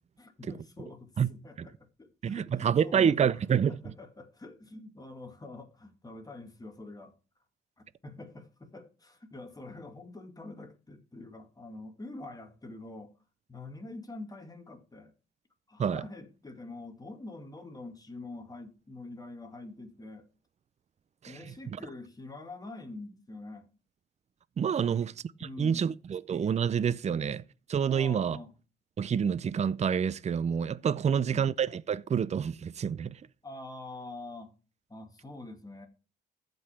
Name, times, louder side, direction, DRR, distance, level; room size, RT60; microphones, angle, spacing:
voice 1, 0.2-1.7 2.0-7.2 7.8-13.1 13.5-15.1 15.7-20.3 21.2-23.7 24.8-25.0 25.4-25.9 27.1-27.2 27.9-28.5 31.0-31.5 33.4-34.5 34.9-35.9, left 2 dB, 20° left, 2.3 m, -45 dB
voice 2, 2.2-3.8 15.8-16.0 21.2-21.4 21.7-21.8 24.6-25.1 25.6-27.4 27.7-28.4 29.0-33.2, right 7 dB, 35° right, 0.6 m, -28 dB
14.5 x 5.4 x 4.5 m
cardioid pair, 90°, 20 cm